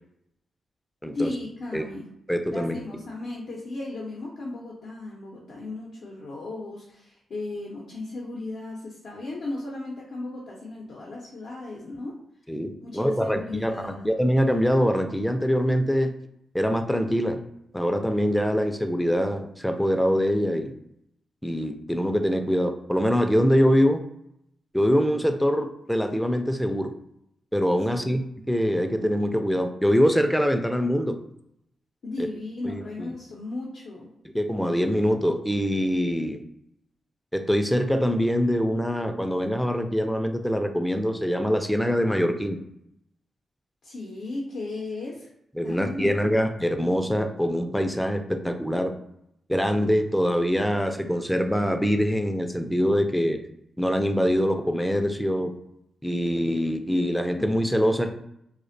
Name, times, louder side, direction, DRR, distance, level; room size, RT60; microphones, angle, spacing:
voice 1, 1.1-2.1 2.5-12.2 12.8-14.1 27.9-28.2 32.0-34.1 43.8-45.3 45.6-46.3, left 2 dB, 75° left, -3 dB, 0.5 m, -35 dB
voice 2, 2.3-2.8 12.5-16.1 16.5-17.4 17.7-20.7 21.4-24.0 24.7-26.9 27.5-28.2 28.5-31.1 32.6-33.1 34.3-36.4 37.3-42.6 45.6-48.9 49.5-53.4 53.8-55.6 56.0-58.1, equal, 5° left, 6 dB, 0.3 m, -24 dB
2.4 x 2.0 x 2.5 m, 0.76 s
supercardioid pair, 50°, 0 cm